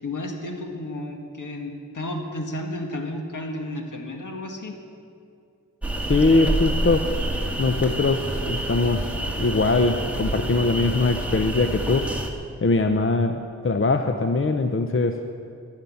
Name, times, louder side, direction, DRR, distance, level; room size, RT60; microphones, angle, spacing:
voice 1, 0.0-4.8, left 1 dB, 70° left, 2 dB, 2.0 m, -32 dB
sound 1, 5.8-12.3, right 1 dB, 5° right, 1.8 m, -28 dB
voice 2, 6.1-7.1 7.6-9.1 9.4-12.1 12.6-15.2, left 3 dB, 40° left, 7 dB, 0.8 m, -22 dB
11.5 x 11.0 x 9.5 m, 2.4 s
wide cardioid pair, 80°, 32 cm